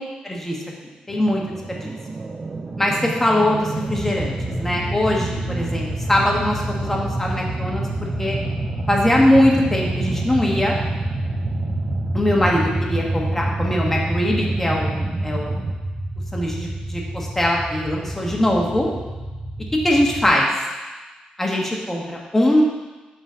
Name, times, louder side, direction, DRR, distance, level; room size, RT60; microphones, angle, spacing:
voice 1, 0.2-0.6 1.1-1.4 1.7-1.9 2.8-7.9 8.2-8.4 8.9-10.7 12.1-15.6 16.3-18.9 19.7-20.5 21.4-22.6, left 1 dB, 10° left, -2 dB, 1.5 m, -21 dB
sound 1, 1.1-15.7, right 3 dB, 30° right, 0.5 m, -31 dB
sound 2, 3.8-20.3, right 1 dB, 55° right, 2.7 m, -28 dB
12.0 x 4.1 x 3.9 m, 1.2 s
cardioid pair, 120°, 3 cm